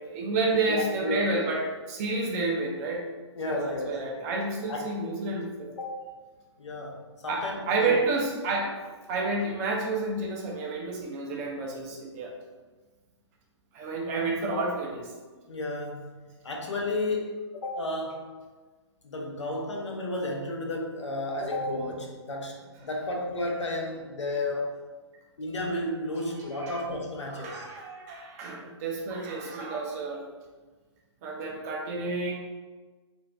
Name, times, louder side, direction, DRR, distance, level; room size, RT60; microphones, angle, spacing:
voice 1, 0.0-3.1 3.5-5.7 7.3-8.8 9.1-12.3 13.7-15.1 26.3-26.8 27.3-30.2 31.2-32.4, right 3 dB, 35° right, 0 dB, 0.6 m, -30 dB
voice 2, 0.5-1.2 3.4-4.0 4.7-4.9 5.7-6.0 6.6-7.0 7.2-7.9 15.5-18.3 19.0-24.8 25.4-27.7, left 2 dB, 75° left, 0 dB, 0.7 m, -32 dB
2.5 x 2.4 x 3.2 m, 1.3 s
figure-of-eight pair, 125°, 15 cm